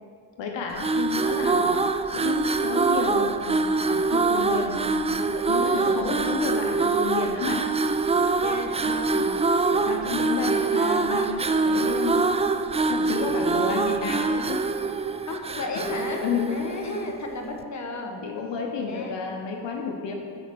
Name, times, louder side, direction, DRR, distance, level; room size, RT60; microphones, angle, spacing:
voice 1, 0.4-7.6 8.8-9.0 9.7-12.2 12.9-14.6 16.2-16.6 18.2-20.1, left 5 dB, 80° left, 2 dB, 1.0 m, -31 dB
sound 1, 0.7-17.1, right 4 dB, 15° right, 0.3 m, -24 dB
voice 2, 5.6-6.3 8.4-9.3 10.4-10.5 10.8-11.0 15.3-18.2 18.8-19.1, left 2 dB, 40° left, 2 dB, 1.3 m, -34 dB
10.0 x 4.2 x 6.1 m, 2.2 s
cardioid pair, 70°, 43 cm